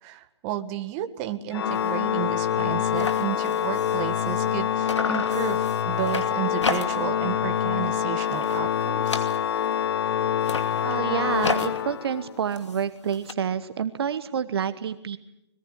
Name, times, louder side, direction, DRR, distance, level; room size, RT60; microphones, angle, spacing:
voice 1, 0.0-9.3, right 12 dB, 30° right, 8 dB, 1.7 m, -32 dB
Organ, 1.5-12.4, left 9 dB, 55° left, 0.8 m, -26 dB
sound 1, 1.7-2.0 2.3-2.4 2.6-4.6 4.8-7.2 7.6-7.9 8.2-9.8 10.3-13.3, left 4 dB, 80° left, 2.6 m, -34 dB
voice 2, 10.8-15.2, right 7 dB, 60° right, 12 dB, 1.2 m, -28 dB
25.5 x 21.5 x 8.4 m, 0.85 s
hypercardioid pair, 135°, 15 cm